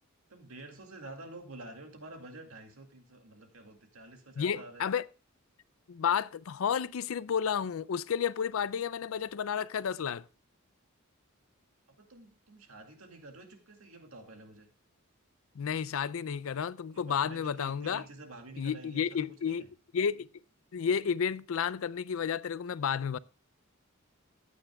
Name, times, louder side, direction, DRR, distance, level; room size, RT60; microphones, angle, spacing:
voice 1, 0.3-4.8 11.9-14.7 16.9-19.7, right 2 dB, 75° right, 2.3 m, -49 dB
voice 2, 4.4-5.0 5.9-10.2 15.6-18.0 18.6-19.7 19.9-20.3 20.7-23.2, left 7 dB, 70° left, 0.4 m, -31 dB
14.5 x 9.3 x 2.3 m
head